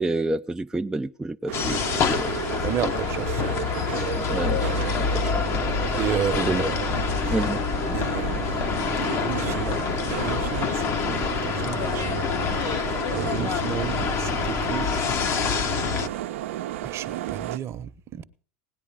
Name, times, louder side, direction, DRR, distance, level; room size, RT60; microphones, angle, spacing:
voice 1, 0.0-2.3 4.2-5.5 6.4-6.7 7.3-7.6 13.4-13.5, right 2 dB, 10° right, 0.5 m, -29 dB
sound 1, 1.5-16.1, left 6 dB, 45° left, 1.2 m, -26 dB
sound 2, 1.5-17.6, right 13 dB, 75° right, 0.8 m, -33 dB
voice 2, 2.6-3.5 6.0-6.8 7.9-12.2 13.1-15.1 16.8-18.2, right 10 dB, 40° right, 1.0 m, -32 dB
18.0 x 9.9 x 5.0 m
hypercardioid pair, 95°, 7 cm